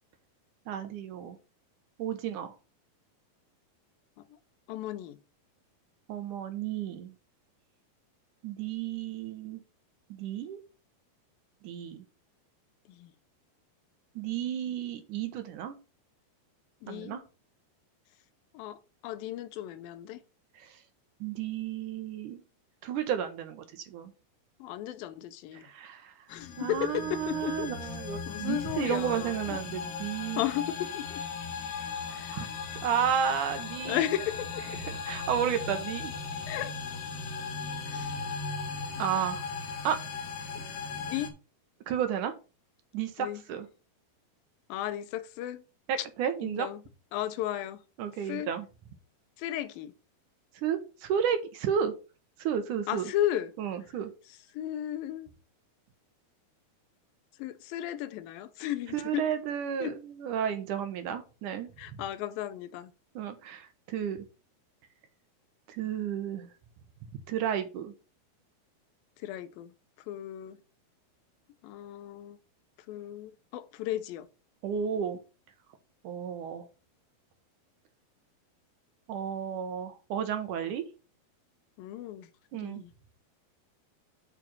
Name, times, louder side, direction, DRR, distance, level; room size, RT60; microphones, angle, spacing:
voice 1, 0.7-1.4 2.0-2.5 6.1-7.1 8.4-9.6 10.2-10.6 11.6-12.0 14.2-15.8 16.9-17.2 20.6-20.7 21.2-22.4 22.8-24.1 25.5-26.1 26.6-30.4 32.3-32.5 32.8-34.0 35.1-36.1 39.0-39.4 39.8-40.0 41.9-42.3 42.9-43.7 45.9-46.7 48.0-48.7 50.6-51.9 52.4-53.0 53.6-54.1 58.9-61.7 63.2-64.2 65.7-66.5 67.3-67.9 74.6-75.2 76.0-76.7 79.1-80.8 82.5-82.8, right 8 dB, 70° right, 2.1 m, -32 dB
voice 2, 4.7-5.2 12.9-13.1 16.8-17.2 18.5-20.2 24.6-25.7 26.3-27.9 28.3-29.6 30.4-31.2 32.1-32.4 33.9-35.0 36.5-36.7 37.9-38.2 40.6-40.7 41.1-41.3 43.2-43.4 44.7-45.6 46.0-46.1 46.4-46.8 47.1-47.8 48.2-48.5 49.4-49.9 52.9-53.5 54.5-55.3 57.4-59.2 59.8-60.0 61.8-62.9 69.2-69.7 70.1-70.6 71.6-72.4 72.9-74.3 81.8-82.9, left 12 dB, 80° left, 2.3 m, -35 dB
sound 1, 26.3-41.3, left 5 dB, 60° left, 2.9 m, -37 dB
7.5 x 5.1 x 5.9 m
omnidirectional pair, 4.5 m